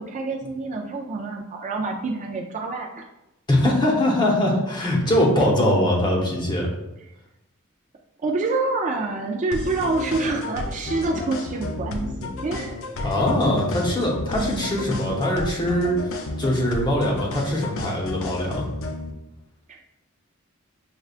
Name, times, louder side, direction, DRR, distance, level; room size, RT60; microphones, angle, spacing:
voice 1, 0.0-3.0 8.2-13.1 14.3-15.0 19.7-19.8, right 3 dB, 35° right, 1 dB, 0.3 m, -27 dB
voice 2, 3.5-6.7 13.0-15.9 16.4-18.7, left 1 dB, 20° left, -2 dB, 0.8 m, -22 dB
sound 1, 9.5-19.1, left 2 dB, 65° left, 0.5 m, -32 dB
6.6 x 2.2 x 2.4 m, 0.93 s
head